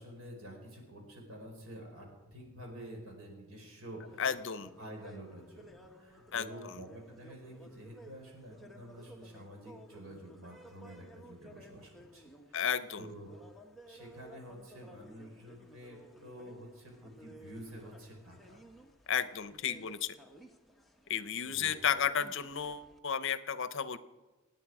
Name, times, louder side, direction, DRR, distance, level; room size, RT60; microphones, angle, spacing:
voice 1, 0.0-2.1 2.3-4.2 4.8-12.6 13.0-13.3 13.8-18.6 21.4-21.8, right 1 dB, 85° right, 1 dB, 4.8 m, -49 dB
sound 1, 4.0-23.0, right 1 dB, ahead, 1.1 m, -56 dB
voice 2, 4.2-4.7 6.3-6.8 12.5-13.1 19.1-20.2 21.1-24.0, left 8 dB, 65° left, 14 dB, 0.7 m, -33 dB
26.5 x 9.3 x 4.9 m, 1.2 s
head